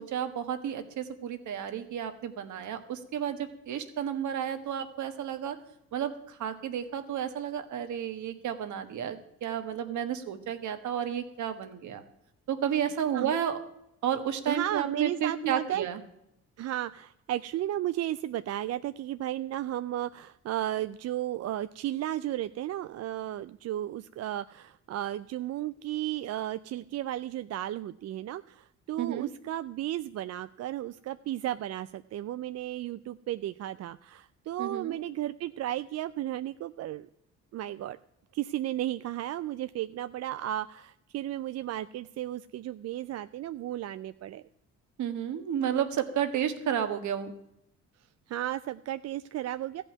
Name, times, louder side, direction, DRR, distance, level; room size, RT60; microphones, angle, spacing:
voice 1, 0.0-5.6 5.9-12.0 12.5-13.6 14.0-16.0 29.0-29.3 34.6-35.0 45.0-47.3, right 9 dB, 70° right, 8 dB, 1.4 m, -32 dB
voice 2, 14.5-15.9 16.6-37.1 37.5-38.0 38.3-44.4 48.3-49.8, right 13 dB, 55° right, 13 dB, 0.4 m, -34 dB
14.5 x 5.4 x 9.4 m, 0.82 s
cardioid pair, 90°, 30 cm